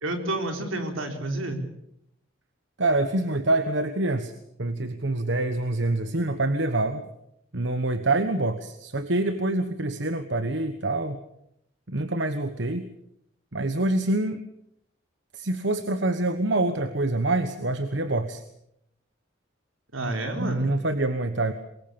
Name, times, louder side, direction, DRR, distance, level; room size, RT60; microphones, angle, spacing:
voice 1, 0.0-1.6 19.9-20.7, right 2 dB, 80° right, 4 dB, 4.3 m, -29 dB
voice 2, 2.8-4.3 4.6-7.1 7.5-11.2 11.9-12.9 13.5-14.4 15.3-18.4 20.4-21.5, right 2 dB, 60° right, 10 dB, 1.3 m, -26 dB
23.5 x 21.5 x 7.1 m, 0.78 s
head